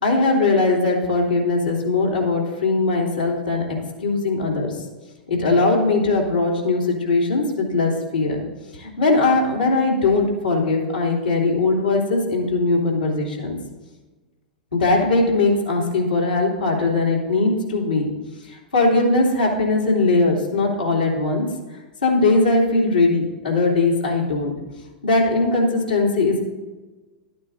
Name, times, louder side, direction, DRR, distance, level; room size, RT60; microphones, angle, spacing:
voice 1, 0.0-4.8 5.3-8.4 8.7-13.6 14.7-18.1 18.5-21.4 22.0-24.5 25.0-26.4, left 3 dB, 85° left, -3 dB, 3.0 m, -20 dB
12.0 x 9.1 x 4.0 m, 1.2 s
figure-of-eight pair, 100°, 5 cm